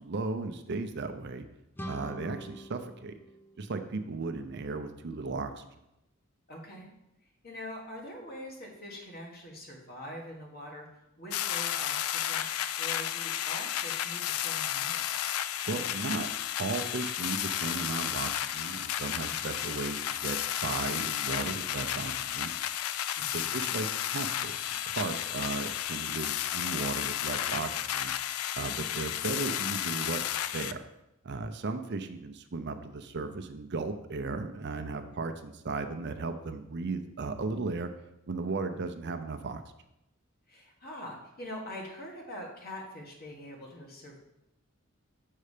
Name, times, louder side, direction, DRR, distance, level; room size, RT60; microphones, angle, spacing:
voice 1, 0.0-1.4 1.9-3.2 3.6-5.7 15.6-16.3 16.6-22.5 23.3-28.1 28.5-30.2 30.5-30.9 31.2-37.9 38.3-39.6, right 3 dB, 55° right, 8 dB, 0.5 m, -36 dB
sound 1, 1.7-4.5, equal, 10° left, 0.3 m, -45 dB
voice 2, 6.5-6.9 7.4-12.5 12.8-15.0 19.2-19.4 23.2-23.5 40.5-44.2, equal, 45° left, 0 dB, 1.7 m, -44 dB
sound 2, 11.3-30.7, left 11 dB, 85° left, 0.4 m, -33 dB
6.6 x 5.5 x 5.0 m, 0.88 s
head